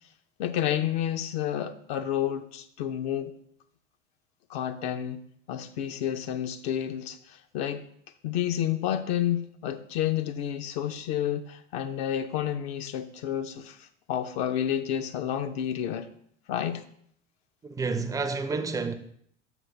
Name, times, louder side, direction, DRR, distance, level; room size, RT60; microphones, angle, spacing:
voice 1, 0.4-3.3 4.5-5.2 5.5-7.8 8.2-16.1 16.5-16.8, left 10 dB, 55° left, 0.6 m, -30 dB
voice 2, 17.6-18.9, right 4 dB, 10° right, 0.5 m, -29 dB
6.2 x 3.6 x 6.0 m
figure-of-eight pair, 70°, 38 cm